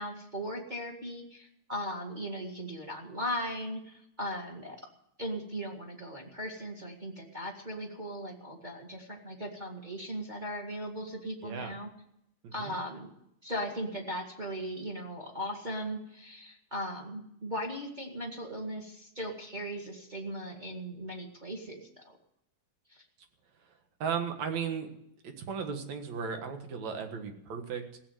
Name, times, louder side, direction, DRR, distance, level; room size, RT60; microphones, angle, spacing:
voice 1, 0.0-4.8 5.2-11.9 12.5-13.1 13.4-22.2 22.9-23.0, equal, 20° right, 1 dB, 1.8 m, -38 dB
voice 2, 24.0-24.9 25.2-28.0, right 6 dB, 70° right, 6 dB, 2.9 m, -35 dB
16.5 x 7.7 x 9.1 m, 0.74 s
omnidirectional pair, 3.3 m